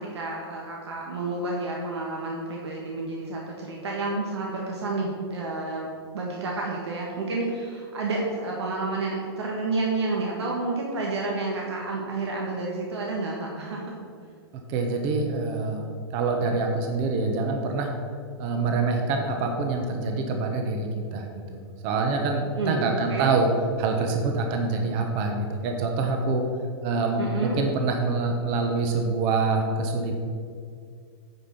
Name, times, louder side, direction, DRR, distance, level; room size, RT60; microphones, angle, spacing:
voice 1, 0.0-14.0 22.5-22.8 23.1-23.3 27.2-27.6, right 3 dB, 85° right, -2 dB, 1.6 m, -30 dB
voice 2, 14.7-15.8 16.1-17.9 18.4-23.5 23.8-26.4 26.8-30.2, right 3 dB, 40° right, 3 dB, 1.3 m, -26 dB
9.5 x 5.2 x 6.1 m, 2.2 s
hypercardioid pair, 130°, 14 cm